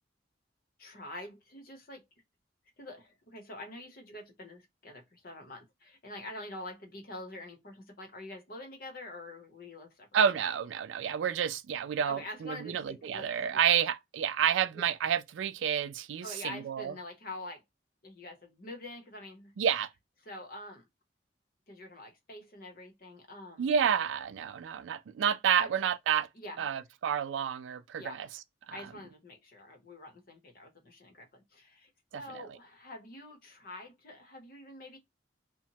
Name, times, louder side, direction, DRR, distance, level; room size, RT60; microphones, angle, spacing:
voice 1, 0.8-2.0 2.8-10.1 12.1-13.6 14.7-14.9 16.2-17.6 18.0-19.5 20.2-20.8 21.7-23.7 25.6-25.7 26.3-26.8 28.0-28.3 28.7-35.0, left 1 dB, 50° left, 0.8 m, -46 dB
voice 2, 10.1-16.9 19.6-19.9 23.6-26.3 26.6-28.3 28.7-28.8 32.1-32.4, right 8 dB, 85° right, 0.3 m, -30 dB
2.9 x 2.1 x 2.7 m
head